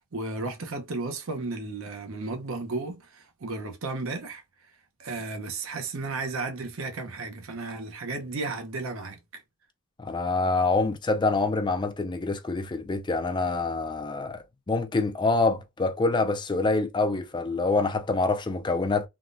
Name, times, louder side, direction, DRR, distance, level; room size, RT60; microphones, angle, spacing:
voice 1, 0.0-4.4 5.0-9.2, right 3 dB, 65° right, 0.7 m, -34 dB
voice 2, 10.0-19.1, left 3 dB, 20° left, 0.3 m, -26 dB
3.5 x 2.2 x 2.5 m
head